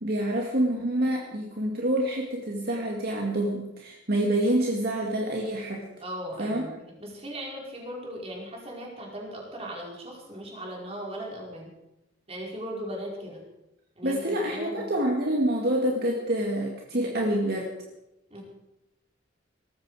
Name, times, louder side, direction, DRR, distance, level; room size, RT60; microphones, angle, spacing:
voice 1, 0.0-5.9 6.4-6.8 14.0-17.7, right 1 dB, 60° right, 0 dB, 2.2 m, -27 dB
voice 2, 6.0-6.7 7.0-11.7 12.3-13.4 14.0-14.9 18.3-18.4, equal, 35° right, -2 dB, 5.0 m, -38 dB
19.0 x 14.5 x 5.0 m, 0.91 s
head